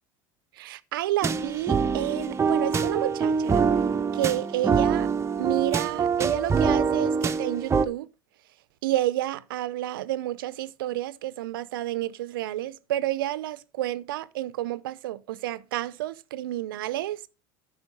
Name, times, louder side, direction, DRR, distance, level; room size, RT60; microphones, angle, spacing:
voice 1, 0.6-3.6 4.1-5.1 5.4-8.1 8.8-17.2, right 14 dB, 90° right, 0.6 m, -30 dB
sound 1, 1.2-7.9, right 5 dB, 25° right, 0.8 m, -24 dB
9.7 x 5.6 x 5.4 m
supercardioid pair, 95°, 11 cm